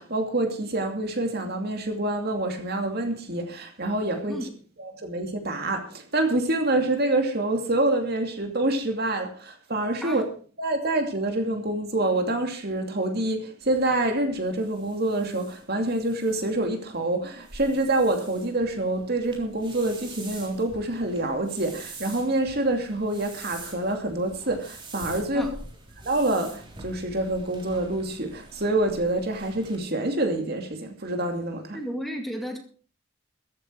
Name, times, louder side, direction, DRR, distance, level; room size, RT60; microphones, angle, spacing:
voice 1, 0.0-4.5 4.8-10.2 10.6-25.5 26.0-31.8, right 2 dB, 50° right, 2.5 m, -26 dB
sound 1, 13.6-29.8, right 3 dB, 25° right, 3.6 m, -46 dB
voice 2, 31.7-32.6, equal, ahead, 2.2 m, -32 dB
14.5 x 13.0 x 4.6 m
head